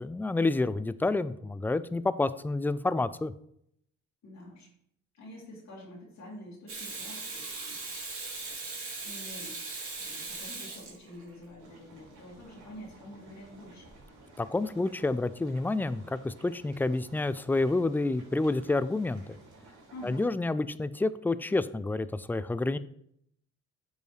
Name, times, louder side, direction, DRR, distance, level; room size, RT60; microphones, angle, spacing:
voice 1, 0.0-3.3 14.4-19.2 20.0-22.8, left 2 dB, 5° left, 15 dB, 0.3 m, -29 dB
voice 2, 4.2-4.7 5.1-7.5 9.0-9.6 10.0-13.9 19.9-20.2, left 1 dB, 65° left, -4 dB, 2.4 m, -47 dB
Water tap faucet / Sink (filling or washing), 6.7-11.4 13.9-14.0, right 3 dB, 45° right, 2.3 m, -39 dB
sound 1, 11.6-20.3, right 2 dB, 70° right, 3.0 m, -54 dB
8.7 x 5.4 x 3.3 m, 0.70 s
cardioid pair, 90°, 30 cm